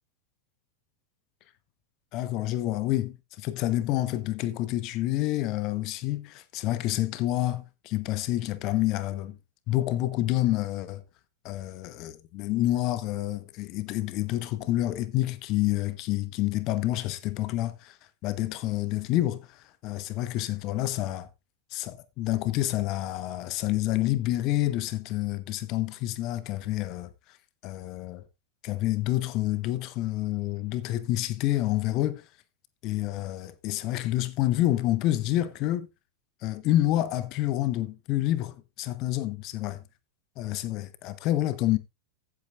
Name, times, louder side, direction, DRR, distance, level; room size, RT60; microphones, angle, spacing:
voice 1, 2.1-9.4 9.7-11.0 11.4-18.0 18.2-21.3 21.7-27.1 27.6-28.2 28.6-32.2 32.8-35.9 36.4-39.8 40.4-41.8, left 15 dB, 40° left, 1.0 m, -28 dB
15.0 x 8.6 x 2.4 m
figure-of-eight pair, 90°, 0 cm